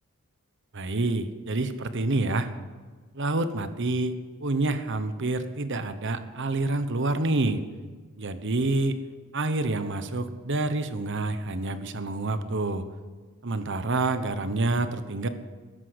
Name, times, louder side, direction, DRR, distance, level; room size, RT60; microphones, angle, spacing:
voice 1, 0.7-2.5 3.1-7.6 8.2-9.0 9.3-12.9 13.4-15.3, right 2 dB, 55° right, 10 dB, 1.0 m, -27 dB
14.0 x 11.5 x 8.0 m, 1.4 s
head